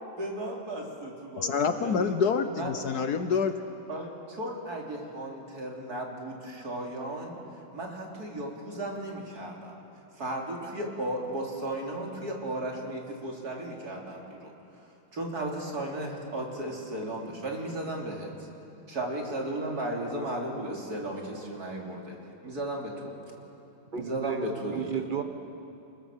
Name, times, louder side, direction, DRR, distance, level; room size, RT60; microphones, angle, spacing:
voice 1, 0.2-2.2 2.6-2.7 3.9-7.4 7.7-9.7 10.2-14.5 15.1-18.5 18.9-22.2 22.4-23.2 23.9-25.0, right 1 dB, 45° right, -1 dB, 3.7 m, -35 dB
voice 2, 1.4-3.6, left 5 dB, 60° left, 9 dB, 1.2 m, -27 dB
voice 3, 23.9-25.2, right 7 dB, 30° right, 7 dB, 1.1 m, -33 dB
27.5 x 20.5 x 7.4 m, 2.8 s
omnidirectional pair, 2.3 m